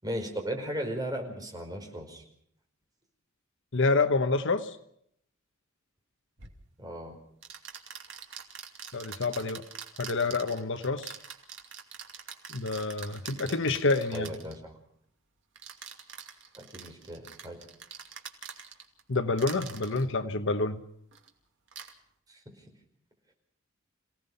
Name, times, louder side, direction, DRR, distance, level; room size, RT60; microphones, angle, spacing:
voice 1, 0.0-2.2 6.8-7.2 14.1-14.8 16.5-17.6 22.3-22.6, equal, 20° right, 2 dB, 5.0 m, -36 dB
voice 2, 3.7-4.8 8.9-9.6 10.0-11.2 12.5-14.3 19.1-20.8, left 3 dB, 60° left, 10 dB, 1.2 m, -28 dB
sound 1, 6.4-6.6 7.4-14.6 15.6-19.0 19.4-20.0 21.1-21.3 21.7-21.9, right 7 dB, 60° right, 2.6 m, -44 dB
28.0 x 17.5 x 5.6 m, 0.69 s
head